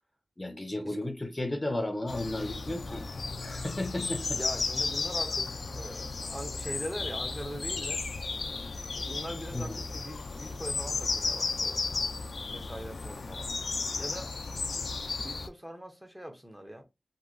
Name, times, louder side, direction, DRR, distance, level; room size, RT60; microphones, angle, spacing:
voice 1, 0.4-3.1 3.4-4.4 9.5-9.8, left 1 dB, 25° left, 0.6 m, -34 dB
sound 1, 2.1-15.5, left 4 dB, 80° left, 0.3 m, -34 dB
voice 2, 2.9-3.4 4.3-8.0 9.0-11.8 12.5-13.5 14.0-14.3 15.2-16.8, equal, 10° right, 0.8 m, -42 dB
2.8 x 2.6 x 2.5 m
wide cardioid pair, 95°, 0 cm